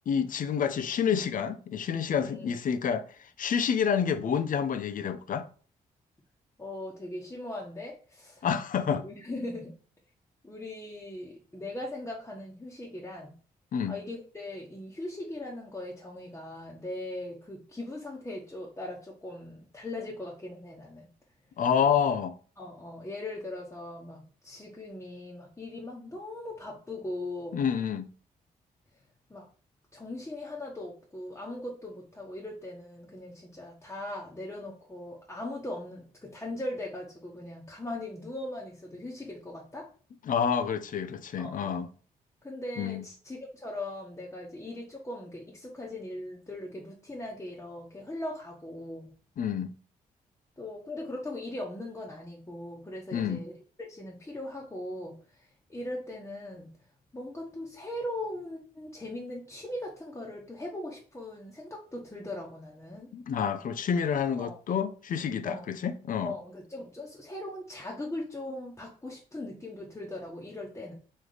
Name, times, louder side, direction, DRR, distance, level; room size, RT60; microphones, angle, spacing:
voice 1, 0.1-5.5 8.4-9.0 13.7-14.0 21.6-22.4 27.5-28.1 40.2-41.9 42.8-43.0 49.4-49.7 53.1-53.4 63.1-66.3, left 7 dB, 60° left, 0.5 m, -28 dB
voice 2, 2.2-2.5 6.6-8.5 9.0-9.7 10.4-13.3 13.9-21.1 21.8-21.9 22.6-27.6 29.3-29.5 29.9-39.9 41.4-41.8 42.4-49.1 50.6-56.8 57.1-63.1 64.4-64.6 65.4-65.6 66.2-70.9, left 1 dB, 15° left, 1.1 m, -39 dB
3.2 x 3.1 x 3.9 m
supercardioid pair, 55°, 16 cm